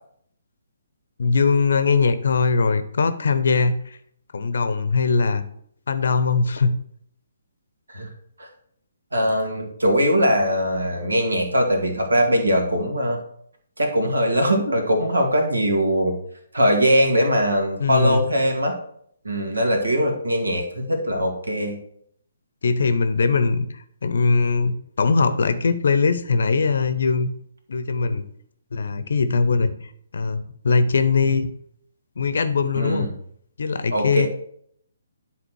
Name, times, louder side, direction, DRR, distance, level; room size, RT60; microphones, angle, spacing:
voice 1, 1.2-4.0 4.3-5.4 5.9-6.8 17.8-18.3 22.6-27.3 27.7-28.2 28.7-29.7 30.1-31.5 32.2-33.1 33.6-34.3, left 4 dB, 60° left, 11 dB, 0.8 m, -21 dB
voice 2, 9.1-13.2 13.8-16.2 16.5-18.7 19.2-21.8 32.7-33.1 33.9-34.3, equal, 75° right, 2 dB, 2.2 m, -21 dB
10.5 x 4.1 x 4.7 m, 0.66 s
figure-of-eight pair, 135°, 0 cm